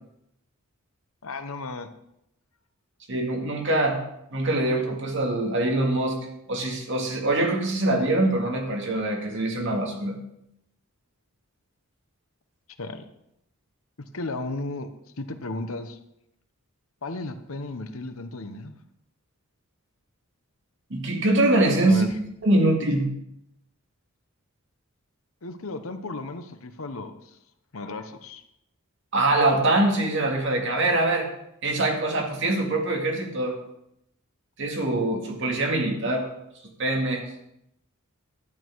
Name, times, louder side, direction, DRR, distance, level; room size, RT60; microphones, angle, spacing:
voice 1, 1.2-1.9 12.8-13.0 14.0-14.9 15.2-16.0 17.0-18.7 21.8-22.1 25.4-27.4 27.7-28.4, left 2 dB, 70° left, 8 dB, 1.0 m, -34 dB
voice 2, 3.1-4.0 4.3-6.2 6.5-10.2 20.9-22.1 22.4-23.1 29.1-31.3 31.6-33.6 34.6-36.3 36.8-37.3, right 2 dB, 55° right, 1 dB, 2.1 m, -23 dB
11.5 x 8.5 x 4.7 m, 0.80 s
head